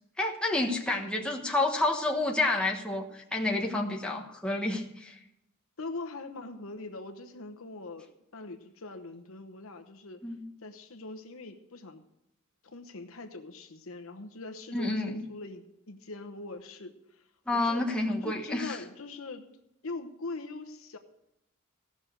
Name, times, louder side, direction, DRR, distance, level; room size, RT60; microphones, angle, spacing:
voice 1, 0.2-5.2 10.2-10.4 14.7-15.2 17.5-18.8, left 2 dB, 5° left, -1 dB, 1.2 m, -29 dB
voice 2, 5.8-10.2 10.6-12.0 12.6-17.8 18.2-19.5 19.8-21.0, left 3 dB, 70° left, 6 dB, 1.0 m, -42 dB
16.0 x 6.3 x 6.6 m, 0.85 s
head